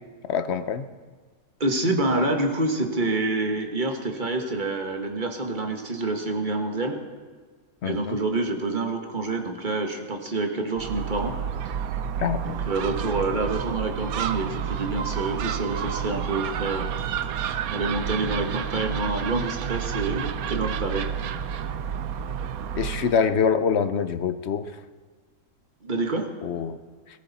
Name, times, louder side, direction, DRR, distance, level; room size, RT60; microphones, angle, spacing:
voice 1, 0.3-0.9 7.8-8.2 12.2-12.6 22.8-24.7 26.4-26.8, left 6 dB, 55° left, 10 dB, 0.9 m, -25 dB
voice 2, 1.6-7.0 7.8-11.3 11.6-11.7 12.4-16.9 17.7-21.1 25.8-26.3, right 2 dB, 30° right, 3 dB, 1.6 m, -27 dB
Gull seagull, 10.7-23.2, right 8 dB, 70° right, 1.1 m, -30 dB
21.5 x 14.5 x 4.1 m, 1.4 s
omnidirectional pair, 1.7 m